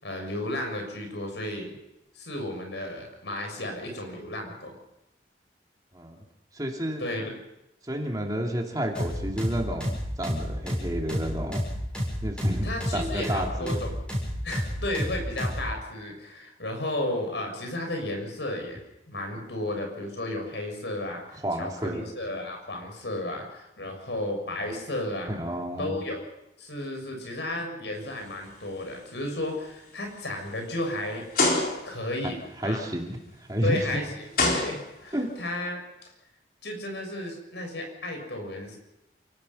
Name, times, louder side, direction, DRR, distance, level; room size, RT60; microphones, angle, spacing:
voice 1, 0.0-1.7 2.2-4.8 7.0-7.3 12.6-13.9 14.4-25.4 25.8-26.3 26.6-31.2 31.8-32.4 32.6-32.8 33.6-36.1 36.6-38.8, left 1 dB, 75° left, 3 dB, 6.9 m, -33 dB
voice 2, 6.5-7.0 7.8-11.6 12.2-12.7 12.9-13.8 21.4-22.1 25.3-26.0 32.2-32.3 32.6-33.2 33.5-34.0 35.1-35.3, equal, 20° right, 1 dB, 3.0 m, -30 dB
sound 1, 8.9-15.7, equal, 5° left, 7.4 m, -30 dB
sound 2, 28.2-28.5 29.0-29.2 29.9-30.0 31.3-32.1 33.6-33.7 34.3-35.3, left 2 dB, 50° left, 4.4 m, -25 dB
29.0 x 18.5 x 5.7 m, 0.87 s
head